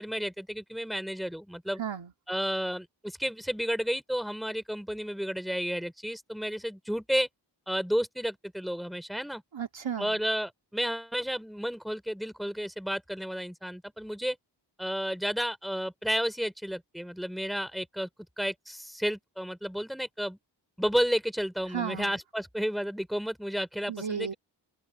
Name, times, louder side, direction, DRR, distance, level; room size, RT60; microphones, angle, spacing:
voice 1, 0.0-1.8 2.3-7.3 7.7-9.4 10.0-14.4 14.8-18.1 18.4-20.4 20.8-24.4, equal, ahead, 3.1 m, -32 dB
voice 2, 1.8-2.1 9.5-10.2 21.7-22.2 23.9-24.3, right 7 dB, 90° right, 2.1 m, -34 dB
wide cardioid pair, 55°, 44 cm